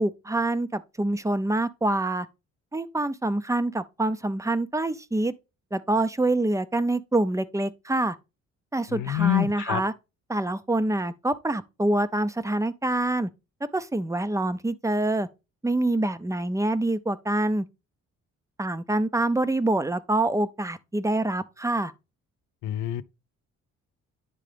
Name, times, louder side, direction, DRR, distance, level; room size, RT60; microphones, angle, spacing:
voice 1, 0.0-2.3 2.7-5.3 5.7-8.2 8.7-9.9 10.3-13.3 13.7-15.3 15.6-17.7 18.6-21.9, right 2 dB, 10° right, 0.5 m, -26 dB
voice 2, 8.9-9.8 22.6-23.0, left 11 dB, 85° left, 0.6 m, -26 dB
9.8 x 3.7 x 3.3 m
cardioid pair, 90°, 30 cm